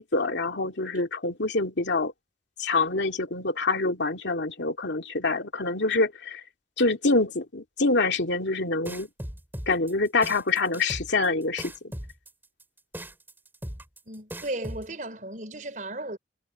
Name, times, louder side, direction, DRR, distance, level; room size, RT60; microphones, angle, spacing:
voice 1, 0.0-2.1 2.6-6.4 6.8-9.1 9.7-11.9, left 3 dB, 90° left, 2.4 m, -26 dB
sound 1, 8.9-14.9, equal, 10° right, 3.9 m, -38 dB
voice 2, 14.0-16.2, right 1 dB, 45° right, 5.1 m, -35 dB
head